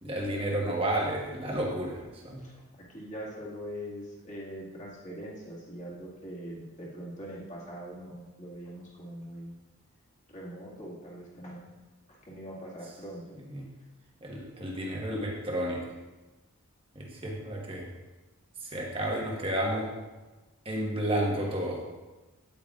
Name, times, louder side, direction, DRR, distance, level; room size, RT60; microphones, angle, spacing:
voice 1, 0.0-2.4 13.5-13.7 14.2-15.8 16.9-17.8 18.6-19.9 20.6-21.8, right 1 dB, 25° right, -1 dB, 1.2 m, -31 dB
voice 2, 2.4-9.6 10.3-11.7 12.3-13.2, equal, 35° left, -5 dB, 2.0 m, -42 dB
9.2 x 8.8 x 2.4 m, 1.2 s
head